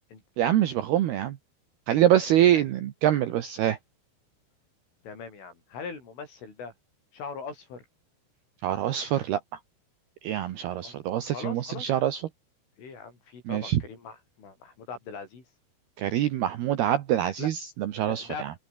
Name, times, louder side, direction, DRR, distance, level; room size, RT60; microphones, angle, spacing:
voice 1, 0.4-1.4 1.9-3.8 8.6-9.4 10.2-12.2 13.5-13.8 16.0-18.5, right 12 dB, 65° right, 2.9 m, -25 dB
voice 2, 2.2-2.6 5.0-6.7 7.1-7.8 10.7-10.9 11.3-11.9 12.8-15.4 17.4-17.5 18.0-18.5, left 5 dB, 80° left, 10.5 m, -41 dB
open air
omnidirectional pair, 5.6 m